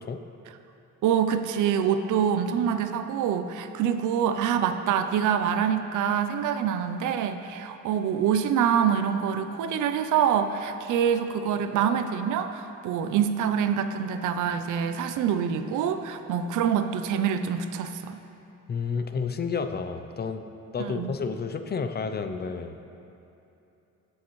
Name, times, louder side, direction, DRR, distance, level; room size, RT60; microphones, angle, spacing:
voice 1, 1.0-18.2 20.8-21.1, right 8 dB, 80° right, 9 dB, 0.6 m, -25 dB
voice 2, 18.7-20.5 20.7-22.8, left 5 dB, 35° left, 8 dB, 0.6 m, -30 dB
17.0 x 6.4 x 3.2 m, 2.9 s
cardioid pair, 90°, 30 cm